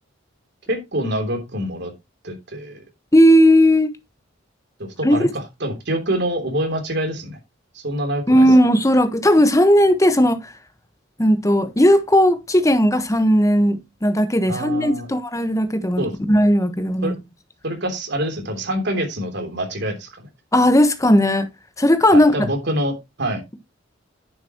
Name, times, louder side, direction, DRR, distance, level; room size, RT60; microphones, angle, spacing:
voice 1, 0.7-1.9 2.2-2.8 4.8-7.4 7.7-8.4 14.5-15.1 16.0-16.1 17.0-17.1 17.6-20.3 22.1-23.4, right 1 dB, 60° right, 3.3 m, -26 dB
voice 2, 3.1-3.9 5.0-5.2 8.3-10.5 11.2-17.2 20.5-21.5 21.8-22.3, equal, 15° left, 1.2 m, -16 dB
10.0 x 8.1 x 3.0 m
head